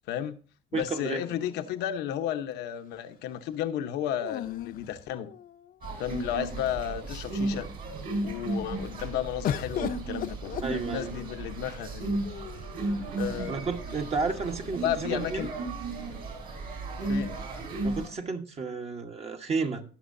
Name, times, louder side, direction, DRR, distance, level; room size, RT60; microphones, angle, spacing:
voice 1, 0.1-0.4 0.7-5.3 6.0-7.7 8.2-12.2 13.2-14.1 14.8-15.5 17.0-17.3, left 10 dB, 85° left, 0.9 m, -33 dB
voice 2, 0.7-1.2 10.6-11.1 13.5-15.5 17.8-19.8, right 4 dB, 40° right, 1.1 m, -32 dB
sound 1, 1.1-2.2 4.2-5.7 6.5-6.6 6.9-7.5 9.4-11.3 12.2-12.9, left 10 dB, 55° left, 0.7 m, -37 dB
sound 2, 5.8-18.1, right 2 dB, 60° right, 4.4 m, -34 dB
18.5 x 6.3 x 2.6 m
cardioid pair, 110°, 17 cm